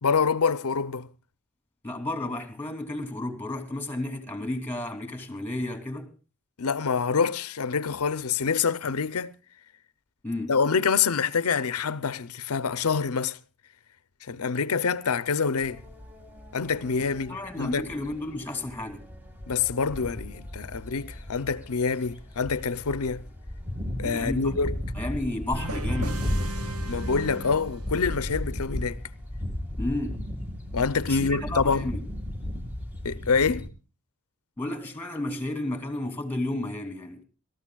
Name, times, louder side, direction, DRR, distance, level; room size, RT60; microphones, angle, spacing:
voice 1, 0.0-1.1 6.6-9.3 10.5-13.4 14.2-15.8 16.5-17.9 19.5-23.2 24.0-24.8 26.9-29.0 30.7-31.9 33.0-33.7, left 5 dB, 75° left, 0.7 m, -26 dB
voice 2, 1.8-6.1 10.2-10.5 17.3-19.1 24.0-24.5 24.9-26.2 29.8-30.2 31.1-32.0 34.6-37.2, left 1 dB, 10° left, 2.8 m, -32 dB
sound 1, 15.6-33.7, left 1 dB, 10° right, 1.9 m, -35 dB
sound 2, 25.5-28.3, right 1 dB, 80° right, 1.2 m, -36 dB
26.0 x 14.0 x 2.3 m
head